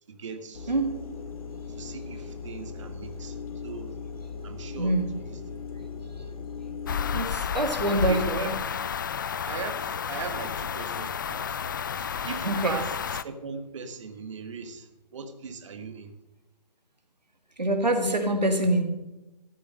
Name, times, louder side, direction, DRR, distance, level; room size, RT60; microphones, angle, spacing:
voice 1, 0.1-0.7 1.8-3.4 3.6-3.9 4.4-4.9 5.3-5.4 7.9-8.5 9.5-11.6 12.2-16.1, right 5 dB, 45° right, 9 dB, 1.4 m, -38 dB
sound 1, 0.5-7.2, left 5 dB, 55° left, 1.8 m, -38 dB
voice 2, 4.8-5.1 7.1-8.5 12.4-12.8 17.6-18.8, right 1 dB, 90° right, 5 dB, 2.1 m, -25 dB
sound 2, 6.9-13.2, left 7 dB, 30° left, 0.4 m, -31 dB
15.0 x 6.7 x 6.5 m, 1.0 s
figure-of-eight pair, 145°, 21 cm